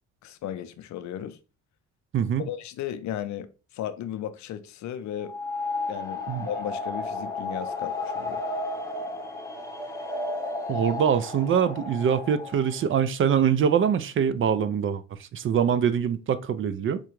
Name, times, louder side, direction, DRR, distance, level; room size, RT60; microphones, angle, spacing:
voice 1, 0.2-1.4 2.4-5.4 5.9-8.4, left 10 dB, 70° left, 0.5 m, -35 dB
voice 2, 2.1-2.5 6.3-6.5 10.7-17.0, right 8 dB, 45° right, 0.4 m, -24 dB
sound 1, 5.2-12.8, left 2 dB, 10° left, 0.8 m, -33 dB
4.8 x 2.2 x 3.0 m
cardioid pair, 90°, 30 cm